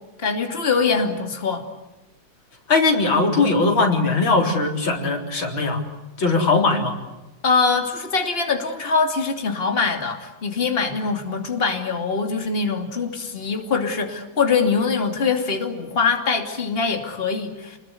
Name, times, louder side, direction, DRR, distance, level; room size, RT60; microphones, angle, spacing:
voice 1, 0.2-1.7 7.4-17.8, left 4 dB, 30° left, 3 dB, 3.0 m, -23 dB
voice 2, 2.7-5.8 6.2-6.9, left 3 dB, 85° left, 2 dB, 4.6 m, -19 dB
30.0 x 21.0 x 8.2 m, 1.0 s
omnidirectional pair, 2.1 m